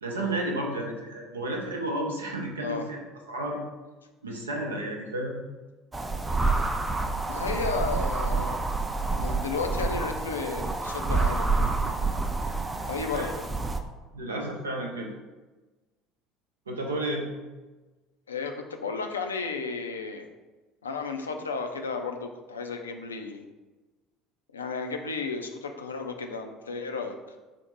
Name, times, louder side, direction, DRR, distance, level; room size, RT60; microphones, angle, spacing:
voice 1, 0.0-3.0 3.3-3.6 4.2-5.4 13.1-13.3 14.1-15.1 16.7-17.3, right 1 dB, 80° right, 0 dB, 0.6 m, -32 dB
sound 1, 5.9-13.8, right 3 dB, 20° right, 0.3 m, -28 dB
voice 2, 7.3-8.6 9.2-12.0 12.9-13.5 18.3-20.3 20.8-23.5 24.5-27.2, left 4 dB, 80° left, 5 dB, 0.3 m, -33 dB
4.2 x 2.1 x 4.5 m, 1.2 s
figure-of-eight pair, 60°, 0 cm